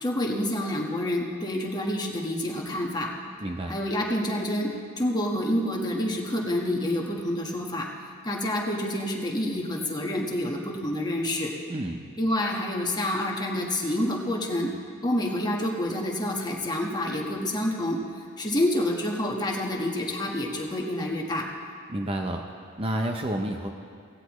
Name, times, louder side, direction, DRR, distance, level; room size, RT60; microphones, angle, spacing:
voice 1, 0.0-3.1 3.7-4.7 5.0-7.9 8.2-11.5 12.2-14.7 15.0-18.0 18.4-21.4, left 1 dB, 20° left, -1 dB, 1.5 m, -28 dB
voice 2, 3.4-3.8 11.7-12.0 21.9-22.4 22.8-23.7, right 1 dB, 25° right, 2 dB, 0.7 m, -29 dB
17.5 x 16.0 x 3.1 m, 2.2 s
head